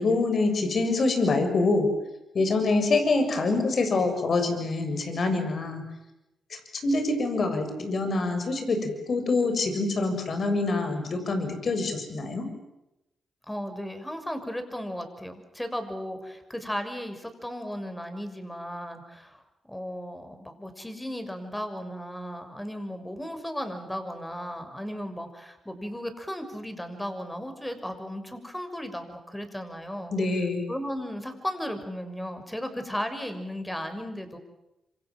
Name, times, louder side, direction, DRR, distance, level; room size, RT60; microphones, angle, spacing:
voice 1, 0.0-1.9 2.3-5.8 6.8-12.5 30.1-30.6, left 3 dB, 60° left, 6 dB, 7.1 m, -25 dB
voice 2, 13.5-19.4 19.7-30.1 30.7-34.4, equal, 10° left, 7 dB, 6.4 m, -35 dB
27.5 x 26.5 x 7.6 m, 0.92 s
supercardioid pair, 50°, 0 cm